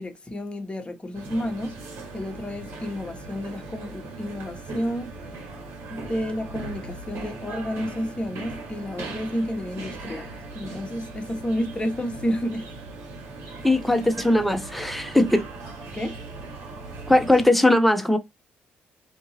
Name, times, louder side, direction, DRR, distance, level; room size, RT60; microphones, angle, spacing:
voice 1, 0.0-1.8 2.1-5.2 5.9-12.6 15.9-16.2, equal, 25° left, 1.0 m, -30 dB
sound 1, 1.1-17.4, right 3 dB, 65° right, 1.6 m, -39 dB
voice 2, 13.6-15.5 17.1-18.2, left 1 dB, ahead, 0.6 m, -19 dB
2.8 x 2.6 x 2.9 m
supercardioid pair, 70°, 4 cm